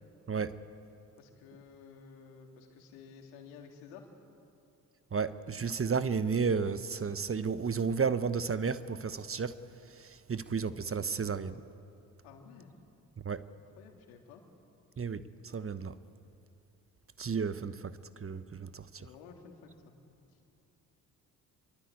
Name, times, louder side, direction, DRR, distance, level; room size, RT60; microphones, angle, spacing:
voice 1, 1.2-4.1 12.2-12.7 13.8-14.4 19.0-19.9, left 6 dB, 75° left, 3 dB, 3.0 m, -52 dB
voice 2, 5.1-9.5 10.0-11.6 13.2-13.4 15.0-15.9 17.2-17.9 18.2-19.1, right 5 dB, 30° right, 14 dB, 1.1 m, -32 dB
27.0 x 23.5 x 8.5 m, 2.7 s
hypercardioid pair, 50°, 47 cm